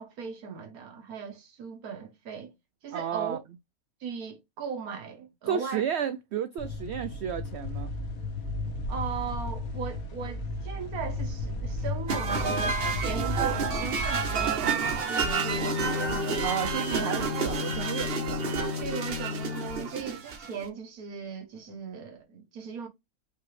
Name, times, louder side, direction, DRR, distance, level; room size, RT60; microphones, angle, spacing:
voice 1, 0.0-2.5 2.8-3.4 4.0-5.9 8.9-15.9 18.8-22.9, right 6 dB, 90° right, 1.6 m, -38 dB
voice 2, 2.9-3.4 5.5-7.9 16.4-18.1, right 9 dB, 65° right, 0.7 m, -32 dB
sound 1, 6.6-14.9, left 2 dB, 75° left, 1.5 m, -34 dB
sound 2, 12.1-20.6, right 5 dB, 50° right, 1.0 m, -30 dB
Bowed string instrument, 15.2-19.9, left 7 dB, 55° left, 0.7 m, -34 dB
5.4 x 2.8 x 3.2 m
omnidirectional pair, 1.5 m